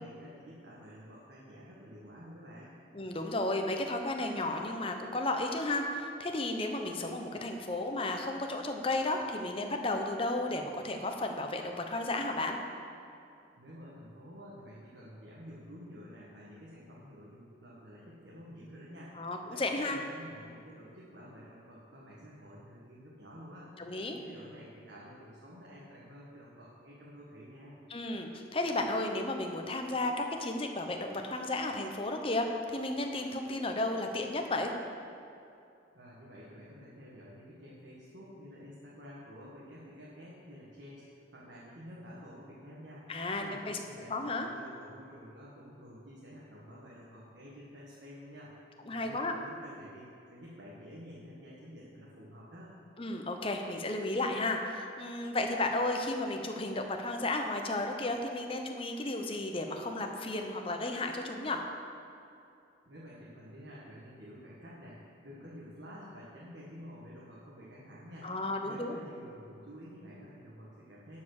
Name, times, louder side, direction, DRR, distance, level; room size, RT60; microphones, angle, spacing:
voice 1, 0.0-2.7 13.6-19.1 19.5-19.6 19.9-23.7 24.1-27.7 35.9-41.0 41.3-43.1 43.3-48.5 48.9-52.7 62.8-68.3 68.6-71.2, equal, 65° right, -6 dB, 1.6 m, -50 dB
voice 2, 2.9-12.6 19.1-20.0 23.8-24.2 27.9-34.7 43.1-43.8 44.1-44.5 48.9-49.3 53.0-61.6 68.2-69.0, left 2 dB, 30° left, 4 dB, 0.8 m, -33 dB
11.5 x 5.4 x 6.5 m, 2.6 s
head